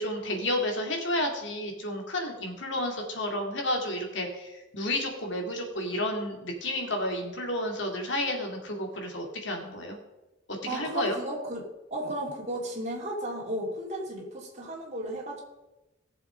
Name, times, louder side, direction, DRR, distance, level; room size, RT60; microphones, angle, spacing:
voice 1, 0.0-10.0 10.7-11.2, left 1 dB, 65° left, 2 dB, 2.5 m, -31 dB
voice 2, 10.7-11.6 11.9-15.4, right 1 dB, 35° right, -2 dB, 2.9 m, -34 dB
17.5 x 7.1 x 5.1 m, 1.0 s
head